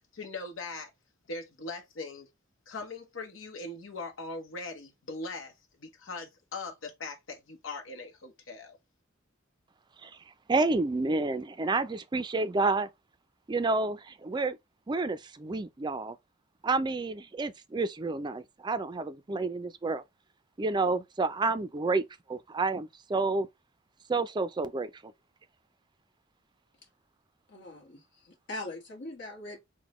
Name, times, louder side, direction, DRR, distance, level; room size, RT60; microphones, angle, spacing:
voice 1, 0.1-0.9 1.3-2.3 2.7-5.5 5.8-8.8, left 3 dB, 80° left, 0.9 m, -40 dB
voice 2, 10.5-12.9 13.5-14.6 14.9-16.2 16.6-20.0 20.6-23.5 24.1-25.1, right 3 dB, 20° right, 0.3 m, -29 dB
voice 3, 27.5-29.6, left 2 dB, 60° left, 1.2 m, -41 dB
5.9 x 2.1 x 3.0 m
head